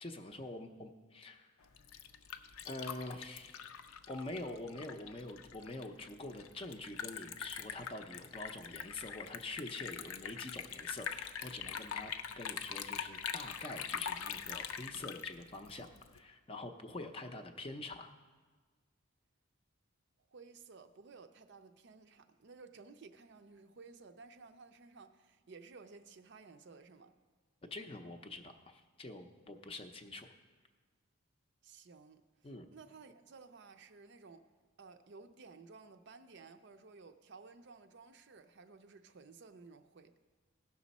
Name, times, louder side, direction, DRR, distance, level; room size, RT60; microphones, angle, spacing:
voice 1, 0.0-1.5 2.6-3.6 4.1-18.1 27.7-30.3 32.4-32.7, left 2 dB, 25° left, 0.5 m, -46 dB
Liquid, 1.6-16.2, left 8 dB, 75° left, 0.5 m, -43 dB
voice 2, 20.3-27.2 31.6-32.2 32.7-34.5 34.8-40.1, right 4 dB, 55° right, 0.5 m, -55 dB
16.5 x 6.1 x 4.1 m
head